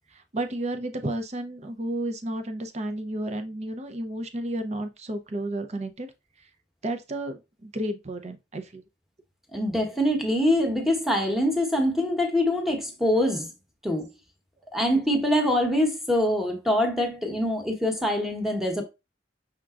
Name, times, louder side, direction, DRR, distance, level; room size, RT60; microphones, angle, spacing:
voice 1, 0.1-6.1 6.8-8.8 14.8-15.0, right 1 dB, 40° right, 0.6 m, -32 dB
voice 2, 9.5-13.5 13.8-14.1 14.7-18.8, left 1 dB, ahead, 1.1 m, -24 dB
5.8 x 3.6 x 2.4 m
head